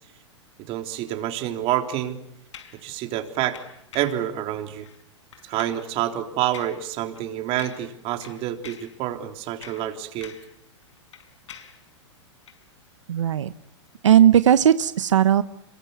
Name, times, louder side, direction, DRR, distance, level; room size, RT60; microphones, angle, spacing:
voice 1, 0.7-2.2 2.8-3.6 3.9-4.9 5.5-10.3, right 12 dB, 40° right, 5 dB, 3.6 m, -28 dB
sound 1, 2.5-2.8 3.5-4.2 4.8-5.0 5.3-5.9 6.5-6.8 7.1-7.3 7.6-8.0 8.2-9.0 9.4-10.6 10.8-11.8 12.4-12.6, left 8 dB, 80° left, 5.0 m, -45 dB
voice 2, 13.1-13.5 14.0-15.4, right 10 dB, 90° right, 13 dB, 1.0 m, -17 dB
26.5 x 23.0 x 9.6 m, 0.77 s
hypercardioid pair, 135°, 15 cm